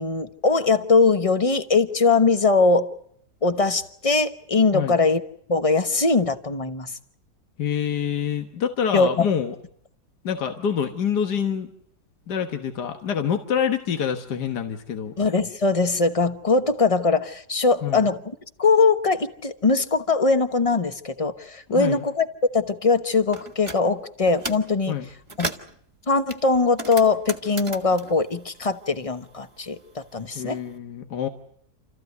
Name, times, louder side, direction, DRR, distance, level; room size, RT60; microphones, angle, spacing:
voice 1, 0.0-2.9 3.4-5.2 5.5-6.9 8.9-9.1 15.2-18.2 18.6-22.3 22.5-25.0 25.4-25.5 26.1-30.6, left 4 dB, 25° left, 10 dB, 1.0 m, -21 dB
voice 2, 7.6-9.6 10.2-11.7 12.3-15.1 17.8-18.1 21.7-22.0 24.9-25.1 30.4-31.3, left 8 dB, 80° left, 6 dB, 1.9 m, -26 dB
sound 1, 23.3-23.8 24.2-24.7 25.1-25.8 26.3-29.2 29.5-30.6, right 2 dB, 20° right, 1.5 m, -35 dB
29.0 x 14.5 x 9.4 m, 0.67 s
omnidirectional pair, 1.8 m